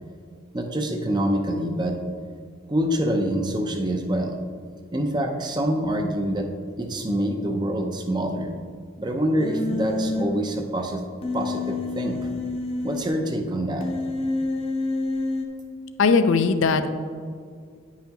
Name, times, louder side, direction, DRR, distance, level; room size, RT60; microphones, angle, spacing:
voice 1, 0.5-2.0 2.7-4.4 4.9-6.5 6.8-8.5 9.0-11.0 11.3-12.2 12.8-13.9, right 1 dB, 20° right, 4 dB, 0.6 m, -25 dB
Human voice, 9.4-10.2 11.2-13.0 13.8-15.4, left 2 dB, 30° left, 0.8 m, -28 dB
voice 2, 16.0-16.9, left 4 dB, 70° left, 10 dB, 0.5 m, -19 dB
9.8 x 5.6 x 3.0 m, 2.1 s
head